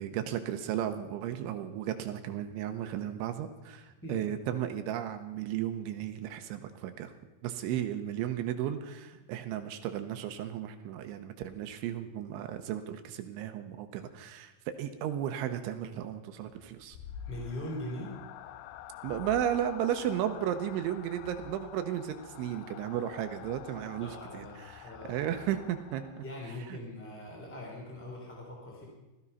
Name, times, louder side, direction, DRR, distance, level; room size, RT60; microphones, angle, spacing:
voice 1, 0.0-7.1 7.4-17.0 19.0-26.2 26.7-26.8, right 10 dB, 80° right, 7 dB, 3.0 m, -34 dB
sound 1, 16.5-26.5, left 10 dB, 90° left, 2.6 m, -48 dB
voice 2, 17.2-18.1 24.0-25.1 26.2-28.8, left 1 dB, 5° left, -1 dB, 1.6 m, -41 dB
18.0 x 13.5 x 5.5 m, 1.1 s
omnidirectional pair, 6.0 m